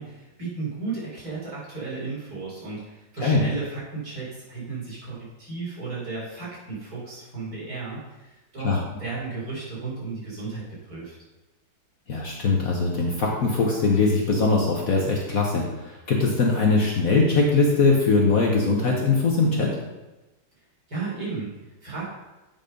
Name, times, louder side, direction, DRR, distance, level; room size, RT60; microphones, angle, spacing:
voice 1, 0.0-11.1 20.9-22.1, right 4 dB, 50° right, -7 dB, 4.1 m, -34 dB
voice 2, 12.1-19.8, left 3 dB, 50° left, -1 dB, 1.3 m, -21 dB
8.4 x 5.7 x 5.2 m, 1.1 s
omnidirectional pair, 2.1 m